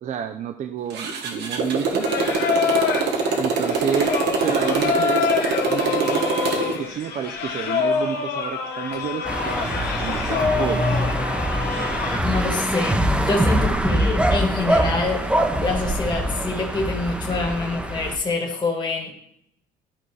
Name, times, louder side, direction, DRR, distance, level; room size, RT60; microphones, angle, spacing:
voice 1, 0.0-2.1 3.4-4.1 4.4-5.3 5.6-6.3 6.8-11.0, right 8 dB, 45° right, 8 dB, 0.5 m, -30 dB
Motorcycle, 0.9-6.8, right 4 dB, 80° right, 1.2 m, -24 dB
Singing, 2.0-12.2, left 6 dB, 75° left, 1.2 m, -26 dB
sound 1, 9.3-18.2, right 1 dB, 5° right, 0.7 m, -23 dB
voice 2, 12.2-15.3 15.6-19.1, left 3 dB, 25° left, 0 dB, 1.5 m, -26 dB
11.5 x 4.0 x 3.2 m, 0.73 s
cardioid pair, 110°, 17 cm